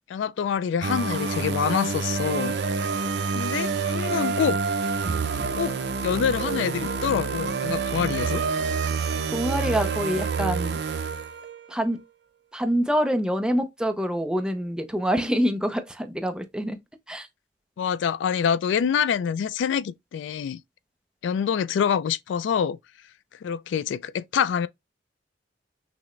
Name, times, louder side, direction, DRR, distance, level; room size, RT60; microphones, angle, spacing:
voice 1, 0.1-2.6 3.3-4.6 5.5-5.8 6.0-8.4 17.8-20.6 21.2-22.8 23.4-24.7, left 7 dB, 80° left, 0.3 m, -26 dB
sound 1, 0.8-11.6, right 4 dB, 65° right, 0.6 m, -27 dB
voice 2, 9.3-10.8 11.7-12.0 12.5-16.8 17.1-17.3, equal, 5° right, 0.5 m, -26 dB
5.9 x 2.1 x 3.1 m
head